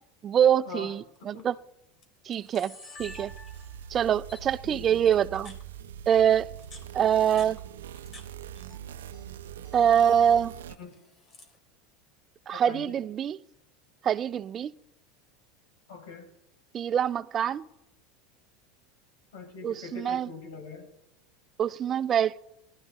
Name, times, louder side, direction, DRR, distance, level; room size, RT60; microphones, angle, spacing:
voice 1, 0.2-1.5 2.3-2.7 3.0-3.3 3.9-5.5 6.1-6.5 6.9-7.6 9.7-10.5 12.5-13.4 14.0-14.7 16.7-17.7 19.6-20.3 21.6-22.4, right 9 dB, 35° right, 0.5 m, -24 dB
Camera, 1.2-1.4 2.0-2.1 2.3-3.9 4.3-4.4 5.1-5.6 6.4-8.3 8.6-9.3 9.5-9.9 10.7-11.6, left 2 dB, 40° left, 3.1 m, -49 dB
sound 1, 3.0-10.8, right 10 dB, 90° right, 0.5 m, -43 dB
voice 2, 4.6-5.2 10.8-11.0 12.5-12.9 15.9-16.3 19.3-20.9, left 4 dB, 80° left, 5.6 m, -42 dB
19.0 x 12.5 x 4.1 m
supercardioid pair, 105°, 0 cm